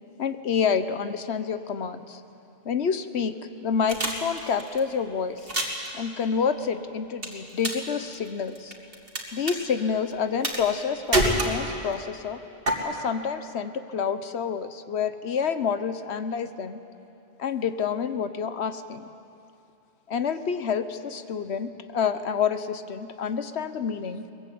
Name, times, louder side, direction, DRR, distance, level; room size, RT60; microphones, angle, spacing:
voice 1, 0.2-2.2 2.6-5.5 5.9-8.7 9.3-12.4 12.8-16.8 17.4-19.0 20.1-24.3, left 6 dB, 85° left, 11 dB, 1.3 m, -28 dB
sound 1, 3.9-4.8 5.4-5.9 7.2-9.2 9.5-9.6 10.4-10.8 11.1-11.9 12.7-12.8, right 1 dB, 60° right, 2.7 m, -26 dB
22.5 x 21.5 x 8.5 m, 2.7 s
omnidirectional pair, 1.1 m